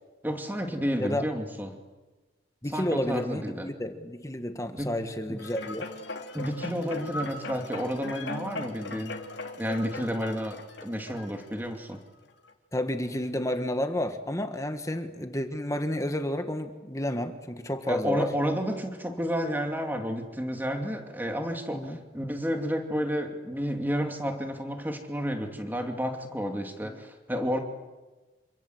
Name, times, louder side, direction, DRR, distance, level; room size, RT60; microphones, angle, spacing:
voice 1, 0.2-1.8 2.7-3.7 4.8-4.9 5.3-5.4 6.3-9.1 9.6-12.0 17.9-27.6, equal, 10° right, 4 dB, 2.6 m, -31 dB
voice 2, 2.6-5.9 12.7-18.3 21.7-22.0 26.8-27.0, left 1 dB, 15° left, 7 dB, 1.6 m, -31 dB
sound 1, 5.4-11.9 12.5-12.6, left 2 dB, 70° left, 2.6 m, -39 dB
27.5 x 25.0 x 8.1 m, 1.2 s
head